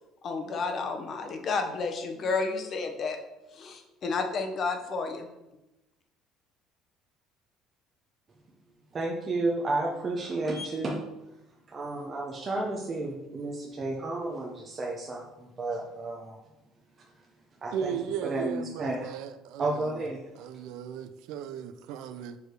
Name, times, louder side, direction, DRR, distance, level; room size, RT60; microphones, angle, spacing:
voice 1, 0.2-3.2 3.5-5.3, left 4 dB, 35° left, 0.8 m, -31 dB
voice 2, 8.9-10.9 11.7-16.4 17.6-17.9 18.2-19.1 19.6-20.2, right 2 dB, 25° right, 0.7 m, -32 dB
voice 3, 17.7-20.1 20.4-22.4, right 8 dB, 70° right, 0.5 m, -36 dB
4.9 x 4.7 x 4.7 m
cardioid pair, 165°, 0 cm